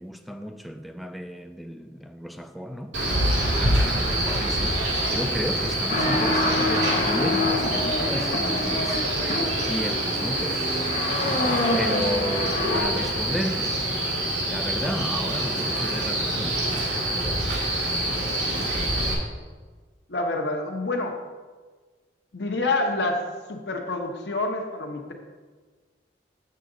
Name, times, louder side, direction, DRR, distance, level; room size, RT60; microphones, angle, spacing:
voice 1, 0.0-2.9 3.4-9.0 9.6-10.8 11.7-13.8 14.5-17.7, equal, ahead, 0.3 m, -33 dB
Male speech man speaking, 2.9-19.1, right 1 dB, 85° right, 2.0 m, -26 dB
sound 1, 5.9-12.8, left 2 dB, 40° left, 1.0 m, -27 dB
voice 2, 20.1-21.2 22.3-23.2 23.5-25.1, left 2 dB, 65° left, 0.9 m, -27 dB
7.7 x 6.6 x 3.8 m
head